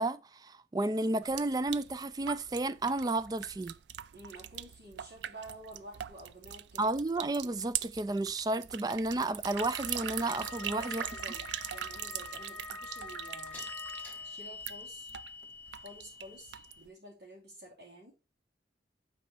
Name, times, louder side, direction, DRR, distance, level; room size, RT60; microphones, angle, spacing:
voice 1, 0.0-3.7 6.8-11.0, right 2 dB, 20° right, 0.3 m, -32 dB
sound 1, 1.2-16.9, right 11 dB, 90° right, 0.4 m, -42 dB
sound 2, 2.5-2.6 12.9-16.9, left 4 dB, 10° left, 2.3 m, -46 dB
voice 2, 4.1-6.9 10.6-11.4 11.7-13.6 14.2-15.1 15.7-18.1, right 1 dB, 70° right, 2.7 m, -50 dB
Wind instrument woodwind instrument, 9.5-14.4, left 4 dB, 30° left, 0.8 m, -46 dB
9.1 x 4.2 x 4.3 m
head